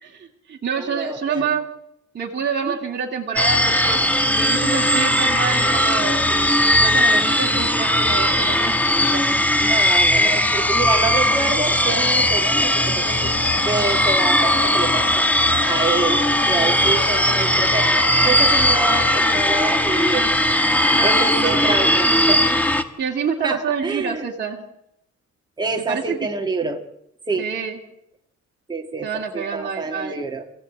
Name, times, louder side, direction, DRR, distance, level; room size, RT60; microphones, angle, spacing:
voice 1, 0.0-1.6 2.1-8.7 9.1-9.2 10.1-10.3 20.9-21.7 23.0-24.7 25.9-26.2 27.4-27.8 29.0-30.3, right 6 dB, 35° right, 0 dB, 2.5 m, -27 dB
voice 2, 0.8-1.5 2.6-2.8 9.6-13.3 13.6-15.3 15.6-17.9 18.2-20.4 21.0-22.5 23.4-24.3 25.6-26.8 27.3-27.5 28.7-30.5, right 3 dB, 15° right, 3 dB, 1.9 m, -27 dB
sound 1, 3.4-22.8, left 1 dB, 5° left, 1.4 m, -18 dB
sound 2, 11.1-20.1, left 8 dB, 75° left, 1.7 m, -34 dB
26.5 x 16.0 x 8.5 m, 0.84 s
cardioid pair, 130°, 31 cm